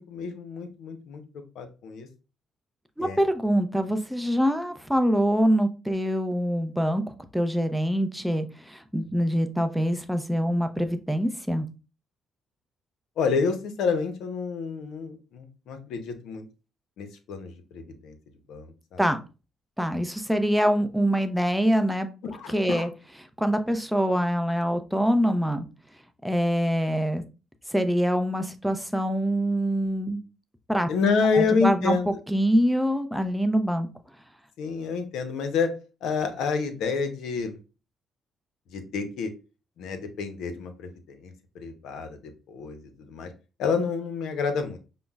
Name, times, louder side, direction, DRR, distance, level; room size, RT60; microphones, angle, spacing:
voice 1, 0.1-1.2 1.6-2.1 3.0-3.2 13.2-16.5 17.0-18.2 18.5-19.0 22.2-22.9 30.9-32.1 34.6-35.7 36.0-37.6 38.7-39.3 39.8-43.3 43.6-44.8, left 5 dB, 85° left, 8 dB, 0.6 m, -28 dB
voice 2, 3.0-7.0 7.3-11.7 19.0-19.2 19.8-22.1 22.5-22.9 23.4-25.7 26.2-27.2 27.7-30.2 30.7-30.9 31.3-32.0 32.3-33.9, equal, ahead, 8 dB, 0.4 m, -24 dB
5.1 x 2.0 x 2.2 m, 0.32 s
cardioid pair, 90°, 0 cm